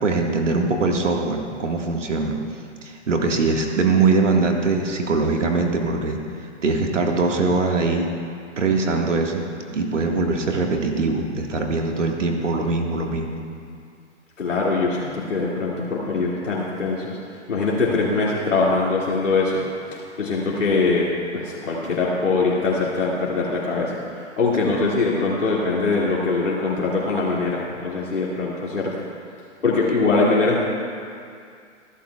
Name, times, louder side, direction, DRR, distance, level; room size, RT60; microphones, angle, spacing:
voice 1, 0.0-2.4 2.8-6.2 6.6-8.1 8.6-9.4 9.7-13.4, right 3 dB, 75° right, 2 dB, 1.8 m, -22 dB
voice 2, 14.4-17.2 17.5-19.6 19.9-29.0 29.6-30.6, left 3 dB, 80° left, -5 dB, 2.5 m, -22 dB
28.0 x 11.5 x 2.4 m, 2.4 s
figure-of-eight pair, 115°, 37 cm